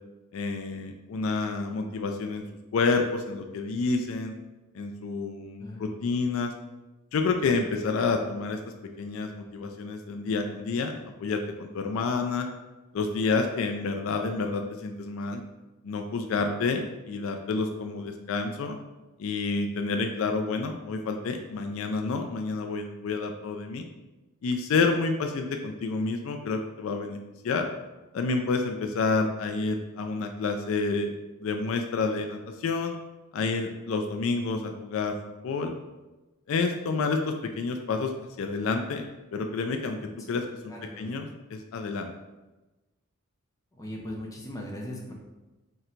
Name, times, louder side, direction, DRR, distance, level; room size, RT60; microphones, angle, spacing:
voice 1, 0.3-2.4 2.7-4.3 4.7-6.5 7.1-8.6 9.0-10.9 11.2-12.5 12.9-15.4 15.8-18.8 19.2-23.8 24.4-27.2 27.4-27.6 28.1-31.1 31.4-32.9 33.3-35.1 35.4-35.7 36.5-39.0 39.3-40.0 40.3-41.2 41.5-42.1, left 4 dB, 65° left, 5 dB, 0.3 m, -29 dB
voice 2, 5.6-5.9 40.7-41.3 43.7-45.1, left 1 dB, 15° left, -2 dB, 0.6 m, -39 dB
3.7 x 2.2 x 4.3 m, 1.1 s
head